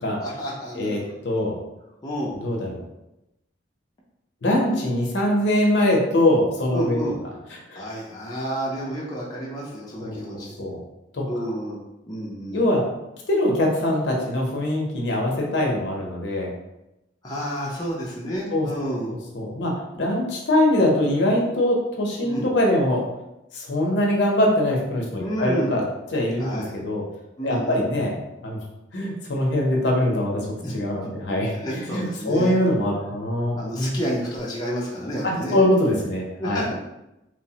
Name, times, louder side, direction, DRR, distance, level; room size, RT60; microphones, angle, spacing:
voice 1, 0.2-1.0 2.0-2.3 6.7-7.2 7.8-10.5 11.2-11.8 12.1-12.6 17.2-19.2 22.2-22.5 25.2-25.7 26.4-26.8 27.4-27.8 30.6-31.1 31.5-32.6 33.6-35.6 36.4-36.7, equal, 20° left, -5 dB, 0.4 m, -30 dB
voice 2, 0.7-1.5 2.3-2.8 4.4-7.0 7.7-7.9 10.0-10.8 11.1-11.2 12.5-12.9 13.3-16.5 18.5-23.1 23.5-25.8 26.1-27.0 27.4-28.1 28.4-28.6 28.9-30.5 30.7-34.0 35.2-36.6, left 1 dB, 65° left, -1 dB, 0.6 m, -23 dB
3.0 x 2.0 x 2.7 m, 0.91 s
head